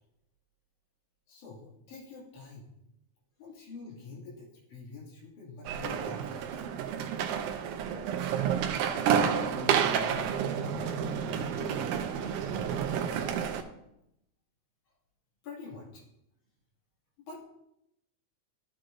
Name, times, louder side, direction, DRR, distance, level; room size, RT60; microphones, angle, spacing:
voice 1, 1.3-2.7 3.4-6.5 15.4-16.0 17.3-17.4, left 4 dB, 75° left, -3 dB, 3.7 m, -46 dB
sound 1, 5.7-13.6, right 8 dB, 90° right, 2.2 m, -30 dB
voice 2, 9.3-13.2, right 1 dB, 65° right, -3 dB, 0.8 m, -44 dB
12.5 x 7.6 x 2.5 m, 0.82 s
omnidirectional pair, 3.5 m